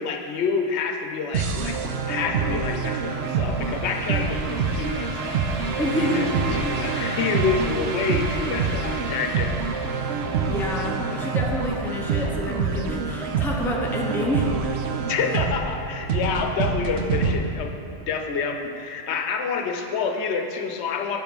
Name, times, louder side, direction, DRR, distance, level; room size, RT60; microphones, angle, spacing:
voice 1, 0.0-1.8 2.1-5.4 5.7-9.5 15.1-17.8 18.1-21.2, left 5 dB, 90° left, 3 dB, 0.9 m, -28 dB
sound 1, 1.3-17.4, right 5 dB, 80° right, 0.9 m, -26 dB
sound 2, 2.7-11.6, right 3 dB, 50° right, 0.5 m, -36 dB
voice 2, 5.8-6.3 10.4-14.6, left 1 dB, 5° left, -1 dB, 0.5 m, -28 dB
6.7 x 4.8 x 5.2 m, 2.6 s
omnidirectional pair, 1.1 m